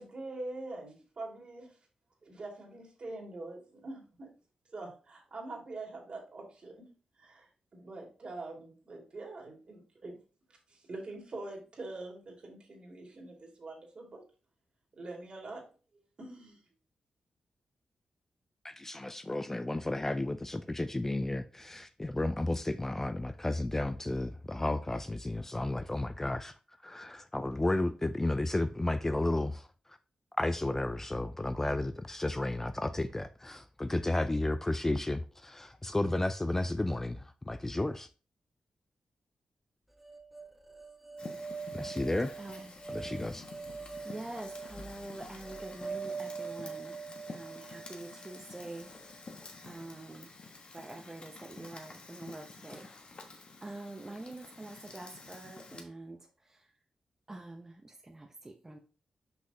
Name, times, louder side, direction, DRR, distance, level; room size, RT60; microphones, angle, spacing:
voice 1, 0.0-1.7 2.2-4.3 4.7-6.9 7.2-10.2 10.7-14.2 15.0-15.6 16.2-16.6, right 2 dB, 50° right, 2.6 m, -44 dB
voice 2, 18.6-26.5 26.8-29.7 30.4-38.1 41.7-42.4 42.9-43.4, left 2 dB, 15° left, 0.4 m, -32 dB
sound 1, 40.0-49.2, right 5 dB, 5° right, 1.2 m, -43 dB
Fire, 41.2-55.8, left 3 dB, 50° left, 1.2 m, -50 dB
voice 3, 42.4-42.8 44.0-49.2 49.6-50.3 50.7-52.9 53.6-56.7 57.3-58.8, right 2 dB, 20° right, 0.8 m, -46 dB
6.1 x 5.5 x 2.9 m
cardioid pair, 80°, 2 cm